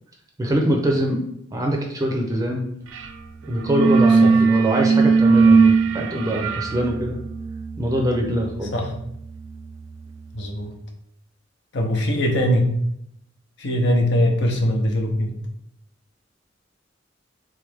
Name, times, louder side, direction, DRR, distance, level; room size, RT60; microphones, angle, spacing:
voice 1, 0.4-1.2 1.5-2.6 3.5-7.2 7.8-8.7, right 1 dB, 20° right, 1 dB, 0.5 m, -23 dB
sound 1, 2.9-3.2 3.4-10.1, right 4 dB, 80° right, 0.4 m, -20 dB
voice 2, 10.3-10.7 11.7-12.6 13.6-15.3, equal, 65° left, 2 dB, 0.8 m, -21 dB
3.7 x 3.2 x 3.4 m, 0.73 s
head